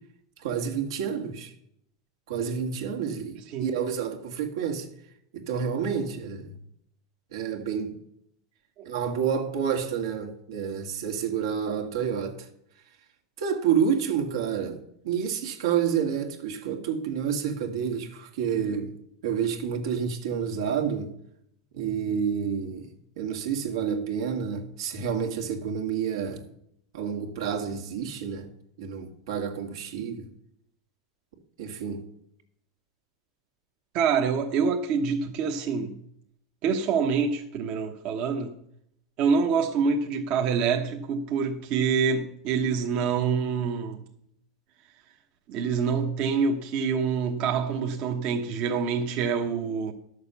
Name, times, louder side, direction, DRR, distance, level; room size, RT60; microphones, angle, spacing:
voice 1, 0.4-1.5 2.3-4.9 5.3-6.5 7.3-8.0 8.8-12.5 13.4-18.9 19.2-21.1 21.7-22.9 23.2-26.4 26.9-28.5 28.8-30.3 31.6-32.0, right 7 dB, 80° right, 1.9 m, -29 dB
voice 2, 33.9-36.0 36.6-38.5 39.2-44.0 45.5-49.9, right 6 dB, 50° right, 1.2 m, -26 dB
11.5 x 6.7 x 7.0 m
hypercardioid pair, 115°, 2 cm